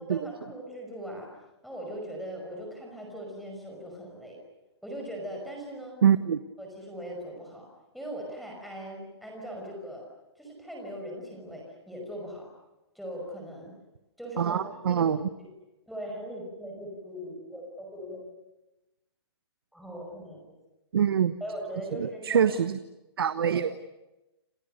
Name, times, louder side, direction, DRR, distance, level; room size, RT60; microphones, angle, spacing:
voice 1, 0.1-1.3 1.6-4.4 4.8-5.9 6.6-7.7 7.9-10.0 10.4-12.5 12.9-13.8 14.2-14.6 14.9-15.1 15.4-15.5 15.9-18.3 19.7-20.4 21.4-22.5 23.4-23.6, equal, ahead, 0 dB, 5.7 m, -40 dB
voice 2, 6.0-6.4 14.4-15.3 20.9-21.4 21.9-22.8 23.2-23.8, right 8 dB, 60° right, 12 dB, 1.2 m, -24 dB
28.5 x 28.5 x 6.7 m, 0.98 s
hypercardioid pair, 175°, 14 cm